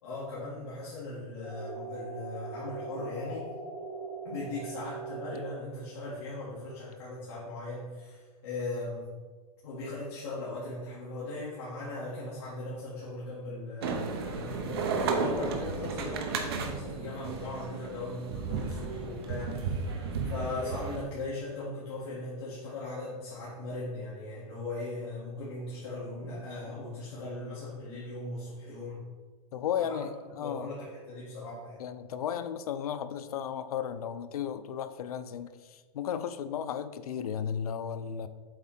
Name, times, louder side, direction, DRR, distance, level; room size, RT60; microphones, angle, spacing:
voice 1, 0.0-3.4 4.2-9.1 9.6-29.0 29.8-30.0 30.4-31.8, left 2 dB, 40° left, -10 dB, 2.2 m, -39 dB
sound 1, 1.4-5.4, right 3 dB, 5° left, 1.8 m, -40 dB
sound 2, 13.8-21.0, right 4 dB, 40° right, 0.8 m, -33 dB
voice 2, 29.5-30.7 31.8-38.3, left 8 dB, 70° left, 11 dB, 0.6 m, -34 dB
7.9 x 3.7 x 5.8 m, 1.4 s
supercardioid pair, 175°, 20 cm